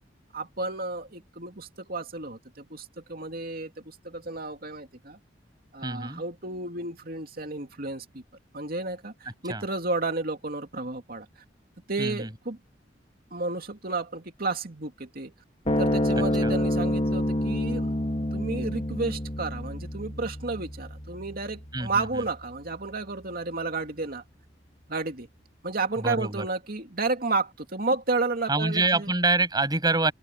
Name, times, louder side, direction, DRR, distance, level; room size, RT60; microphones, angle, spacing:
voice 1, 0.3-5.2 5.7-8.2 8.5-11.3 11.9-12.6 13.3-15.3 15.8-17.9 18.3-24.2 24.9-25.3 25.6-29.1, right 3 dB, 55° right, 2.7 m, -32 dB
voice 2, 5.8-6.2 9.5-9.6 12.0-12.3 16.4-16.5 21.7-22.1 26.0-26.5 28.5-30.1, right 2 dB, 20° right, 7.4 m, -26 dB
sound 1, 15.7-22.3, left 1 dB, 35° left, 2.2 m, -28 dB
open air
head